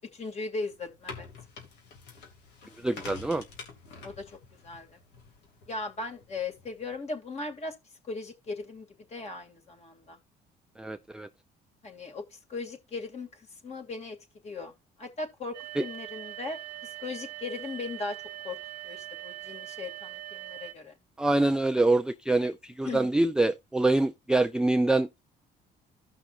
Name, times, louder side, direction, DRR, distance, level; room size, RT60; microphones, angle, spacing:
voice 1, 0.1-1.3 4.0-4.3 4.6-5.0 5.7-7.7 8.0-10.2 11.8-14.2 14.4-14.7 15.0-18.2 18.4-18.6 18.8-20.9 22.8-23.1, left 3 dB, 40° left, 2.7 m, -38 dB
sound 1, 0.7-6.9, left 4 dB, 85° left, 2.9 m, -48 dB
voice 2, 2.8-3.4 10.8-11.3 15.8-15.9 21.2-25.2, right 2 dB, 5° right, 0.4 m, -25 dB
sound 2, 15.5-20.7, right 14 dB, 85° right, 0.6 m, -42 dB
15.0 x 5.7 x 2.6 m
cardioid pair, 110°, 17 cm